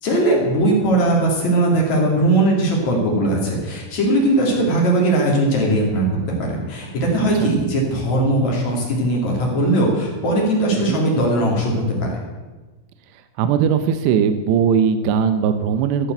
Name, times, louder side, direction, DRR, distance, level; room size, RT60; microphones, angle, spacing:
voice 1, 0.0-6.1 6.4-12.2, right 1 dB, 40° left, -1 dB, 3.3 m, -19 dB
voice 2, 13.4-16.1, right 7 dB, 80° right, 9 dB, 2.5 m, -19 dB
14.5 x 9.1 x 7.9 m, 1.2 s
omnidirectional pair, 5.9 m